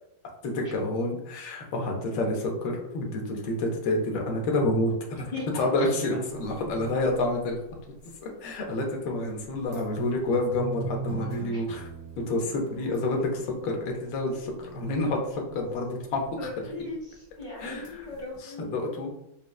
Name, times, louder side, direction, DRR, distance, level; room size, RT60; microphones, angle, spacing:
voice 1, 0.4-7.6 8.2-11.8 12.2-16.2 17.6-17.9 18.7-19.1, left 2 dB, 90° left, 1 dB, 1.5 m, -28 dB
voice 2, 5.3-6.2 11.5-11.6 16.4-18.7, left 2 dB, 55° left, -5 dB, 1.4 m, -38 dB
sound 1, 6.3-7.7 8.1-8.2 8.8-8.9 9.5-13.9 14.3-15.1 15.6-16.9 17.4-17.6 17.8-18.4, right 2 dB, 45° right, 1.2 m, -41 dB
6.0 x 2.1 x 2.3 m, 0.80 s
omnidirectional pair, 2.0 m